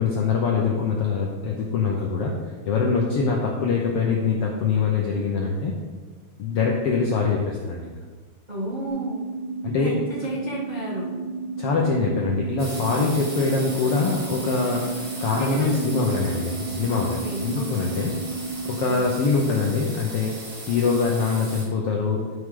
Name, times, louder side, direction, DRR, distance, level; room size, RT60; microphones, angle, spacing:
voice 1, 0.0-2.3 2.7-5.7 6.4-7.9 9.6-10.0 11.6-18.1 18.6-20.4 20.7-22.2, left 4 dB, 80° left, -1 dB, 1.3 m, -24 dB
voice 2, 8.5-9.3 9.8-11.2 15.3-15.9 16.9-17.9, equal, 85° right, -6 dB, 0.4 m, -32 dB
sound 1, 8.9-18.9, right 3 dB, 25° right, 2.0 m, -32 dB
sound 2, 12.6-21.6, right 2 dB, 40° right, 2.2 m, -38 dB
12.5 x 6.2 x 3.8 m, 1.4 s
omnidirectional pair, 3.8 m